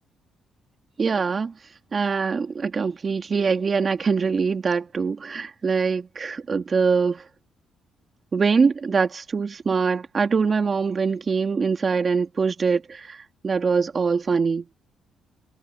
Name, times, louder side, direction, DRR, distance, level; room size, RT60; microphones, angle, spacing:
voice 1, 1.0-1.5 1.9-7.2 8.3-13.2 13.4-14.7, right 5 dB, 40° right, 2.2 m, -23 dB
cardioid pair, 90°, 0 cm